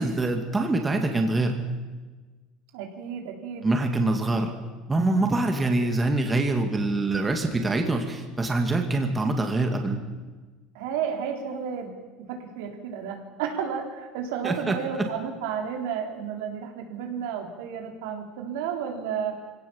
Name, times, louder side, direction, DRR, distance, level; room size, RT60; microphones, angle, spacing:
voice 1, 0.0-1.6 3.6-4.5 4.9-10.0 14.4-14.7, right 2 dB, 15° right, 4 dB, 2.2 m, -24 dB
voice 2, 2.7-3.7 10.7-11.9 12.3-19.4, right 7 dB, 90° right, 2 dB, 4.0 m, -32 dB
24.0 x 17.5 x 7.3 m, 1.3 s
cardioid pair, 150°, 0 cm